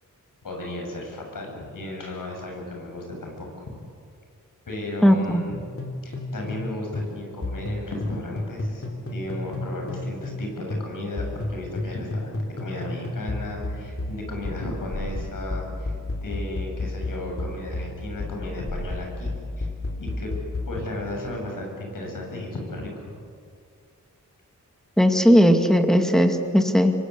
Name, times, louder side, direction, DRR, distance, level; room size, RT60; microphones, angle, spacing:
voice 1, 0.4-3.8 4.7-5.7 6.0-15.9 16.2-19.7 20.0-20.3 20.7-23.1, left 1 dB, 80° left, 1 dB, 7.5 m, -34 dB
voice 2, 5.0-5.4 25.0-26.9, equal, ahead, 5 dB, 2.3 m, -17 dB
sound 1, 5.8-10.4 10.7-20.8, left 2 dB, 45° left, 3.8 m, -31 dB
27.0 x 23.5 x 8.3 m, 2.2 s
wide cardioid pair, 115°, 32 cm